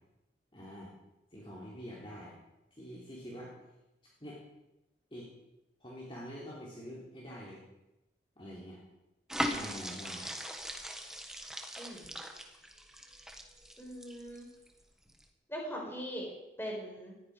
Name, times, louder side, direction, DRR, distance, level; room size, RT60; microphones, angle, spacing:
voice 1, 0.5-0.9 1.3-2.3 2.7-3.5 4.2-4.4 5.1-5.3 5.8-7.6 8.4-8.8 9.5-10.3, equal, 30° left, -5 dB, 3.4 m, -46 dB
sound 1, 9.3-14.7 15.1-15.2, equal, 5° right, 1.4 m, -39 dB
voice 2, 11.8-12.1 13.8-14.4 15.5-16.3 16.6-17.1, equal, 15° left, -1 dB, 5.0 m, -40 dB
18.5 x 15.0 x 5.0 m, 0.96 s
head